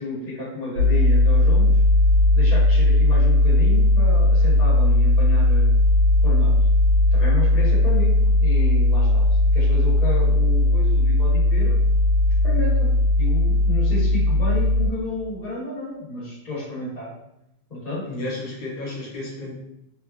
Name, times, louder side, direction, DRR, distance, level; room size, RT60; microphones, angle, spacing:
voice 1, 0.0-1.8 2.3-5.7 6.2-6.5 7.1-9.3 9.5-11.7 12.4-12.9 13.2-17.1 17.7-18.0, left 2 dB, 25° left, -9 dB, 1.0 m, -31 dB
sound 1, 0.8-14.9, left 1 dB, 75° right, 1.1 m, -17 dB
voice 2, 18.0-19.5, left 2 dB, 85° left, -3 dB, 1.4 m, -32 dB
3.4 x 2.0 x 2.4 m, 0.85 s
omnidirectional pair, 1.9 m